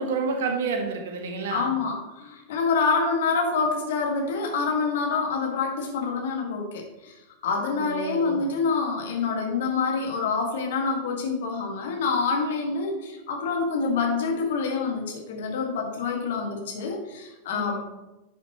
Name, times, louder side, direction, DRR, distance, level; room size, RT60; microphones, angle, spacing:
voice 1, 0.0-1.7 7.8-8.5 17.5-17.8, right 4 dB, 55° right, 3 dB, 1.5 m, -29 dB
voice 2, 1.5-7.2 7.4-17.8, left 4 dB, 55° left, 1 dB, 1.8 m, -26 dB
11.0 x 6.5 x 3.1 m, 1.0 s
figure-of-eight pair, 90°, 0 cm